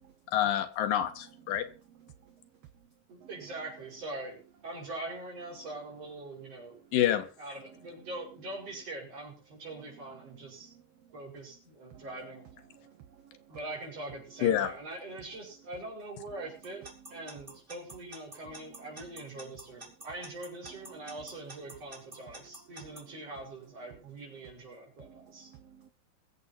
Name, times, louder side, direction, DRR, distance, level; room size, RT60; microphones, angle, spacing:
voice 1, 0.3-1.7 6.9-7.3 14.4-14.7, left 11 dB, 85° left, 2.9 m, -27 dB
voice 2, 3.1-6.8 7.4-10.7 11.1-12.4 13.5-16.8 17.1-25.5, right 2 dB, 45° right, 6.6 m, -43 dB
voice 3, 12.7-13.4 25.0-25.9, right 9 dB, 60° right, 1.8 m, -56 dB
Alarm / Clock, 16.6-23.0, right 1 dB, 15° right, 3.4 m, -46 dB
22.5 x 7.9 x 4.2 m
omnidirectional pair, 3.8 m